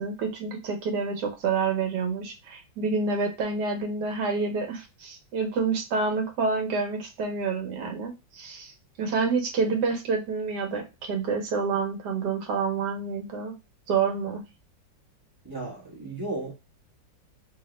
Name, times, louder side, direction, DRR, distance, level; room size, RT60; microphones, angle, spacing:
voice 1, 0.0-8.7 9.0-13.5 13.9-14.4, right 4 dB, 60° right, 1.3 m, -28 dB
voice 2, 15.4-16.5, right 2 dB, 15° right, 0.7 m, -34 dB
3.5 x 2.7 x 3.0 m
omnidirectional pair, 2.2 m